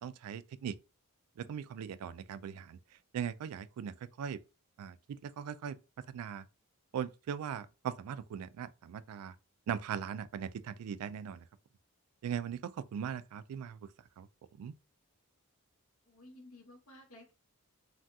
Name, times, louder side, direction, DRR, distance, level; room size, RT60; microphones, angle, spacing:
voice 1, 0.0-0.8 1.4-2.8 3.1-4.4 4.8-5.8 6.1-6.4 6.9-9.3 9.7-11.5 12.2-13.9 14.2-14.3 14.6-14.7, right 8 dB, 90° right, 0.3 m, -39 dB
voice 2, 16.1-17.3, left 1 dB, 70° left, 1.2 m, -54 dB
3.4 x 2.3 x 2.7 m
head